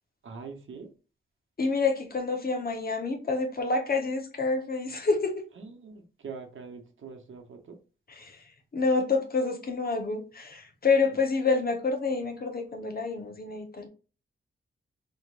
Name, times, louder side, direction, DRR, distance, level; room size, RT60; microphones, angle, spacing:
voice 1, 0.2-0.9 5.6-7.8, right 5 dB, 70° right, 1.0 m, -43 dB
voice 2, 1.6-5.4 8.1-8.5 8.7-13.9, left 4 dB, 45° left, 1.0 m, -28 dB
4.3 x 3.4 x 2.4 m
wide cardioid pair, 90°, 21 cm